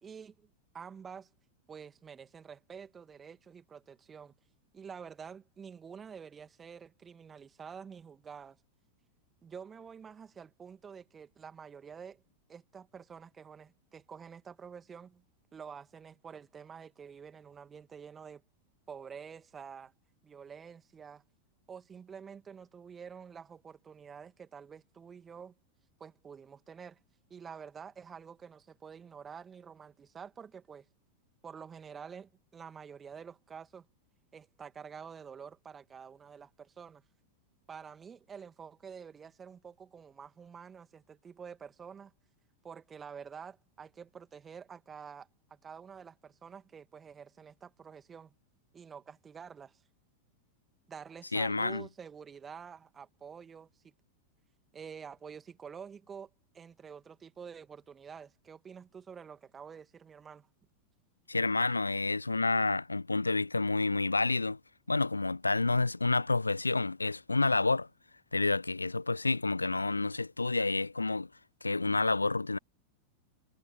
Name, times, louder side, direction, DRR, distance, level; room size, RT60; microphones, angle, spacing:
voice 1, 0.0-0.5 0.7-1.3 1.7-4.3 4.7-8.6 9.4-12.2 12.5-15.2 15.5-18.4 18.9-19.9 20.2-21.2 21.7-25.5 26.0-27.0 27.3-30.9 31.4-33.9 34.3-37.0 37.7-42.1 42.6-45.3 45.6-48.3 48.7-49.8 50.9-53.9 54.7-56.3 56.5-60.5, right 6 dB, 20° right, 2.3 m, -48 dB
voice 2, 51.3-51.8 61.3-64.6 64.9-67.9 68.3-71.3 71.6-72.6, left 3 dB, 80° left, 0.5 m, -29 dB
figure-of-eight pair, 90°, 0 cm